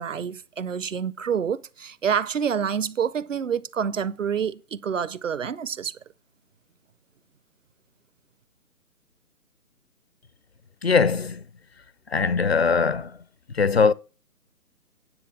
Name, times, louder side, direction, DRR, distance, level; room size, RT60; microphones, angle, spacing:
voice 1, 0.0-6.0, right 7 dB, 60° right, 0.6 m, -27 dB
voice 2, 10.8-11.4 12.1-13.2 13.5-13.9, left 5 dB, 45° left, 0.5 m, -21 dB
9.9 x 6.8 x 5.7 m
figure-of-eight pair, 145°, 45 cm